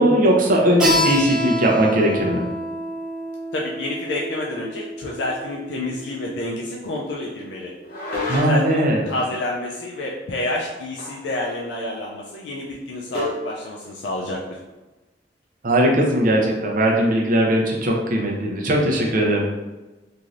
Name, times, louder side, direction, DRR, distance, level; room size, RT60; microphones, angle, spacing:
voice 1, 0.0-2.4 8.3-9.0 15.6-19.4, right 1 dB, 50° right, -1 dB, 0.6 m, -19 dB
Keyboard (musical), 0.8-6.1, equal, 5° right, 0.6 m, -27 dB
voice 2, 3.5-7.7 8.3-14.6, left 1 dB, 90° left, -2 dB, 0.4 m, -29 dB
sound 1, 7.8-8.8 11.0-11.3 11.6-11.7 13.1-13.5, left 2 dB, 55° left, 0.7 m, -29 dB
3.1 x 2.6 x 2.5 m, 1.1 s
head